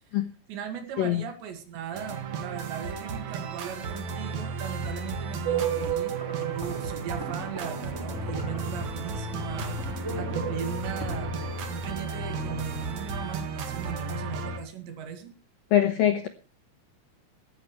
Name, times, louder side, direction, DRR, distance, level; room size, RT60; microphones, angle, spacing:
voice 1, 0.5-15.3, right 8 dB, 70° right, 8 dB, 4.1 m, -38 dB
sound 1, 1.9-14.6, right 3 dB, 50° right, 2.4 m, -34 dB
sound 2, 5.4-12.9, right 7 dB, 5° right, 5.3 m, -35 dB
voice 2, 15.7-16.3, left 11 dB, 80° left, 9 dB, 2.0 m, -22 dB
17.0 x 14.0 x 3.2 m, 0.33 s
omnidirectional pair, 5.5 m